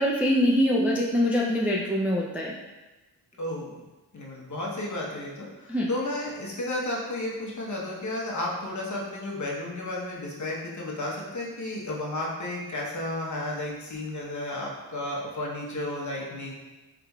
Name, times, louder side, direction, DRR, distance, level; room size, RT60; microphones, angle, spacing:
voice 1, 0.0-2.5 5.7-5.9, equal, 5° right, -4 dB, 0.5 m, -24 dB
voice 2, 3.4-3.7 4.1-16.5, left 1 dB, 40° left, -3 dB, 1.0 m, -33 dB
4.5 x 3.7 x 2.3 m, 1.1 s
cardioid pair, 65°, 45 cm